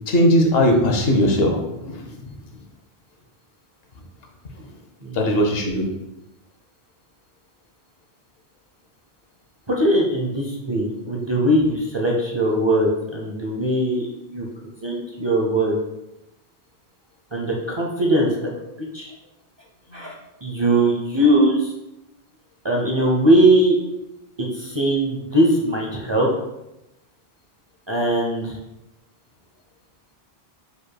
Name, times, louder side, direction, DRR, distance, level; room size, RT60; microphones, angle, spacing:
voice 1, 0.1-2.2 5.1-5.9 19.9-20.0, equal, 70° left, 3 dB, 1.0 m, -19 dB
voice 2, 5.0-5.4 9.7-14.5 14.8-15.7 17.3-18.5 18.9-19.1 19.9-20.1 20.4-21.7 22.6-23.8 24.6-26.3 27.9-28.6, right 1 dB, 30° right, -2 dB, 0.6 m, -20 dB
5.0 x 4.4 x 2.2 m, 0.91 s
omnidirectional pair, 1.1 m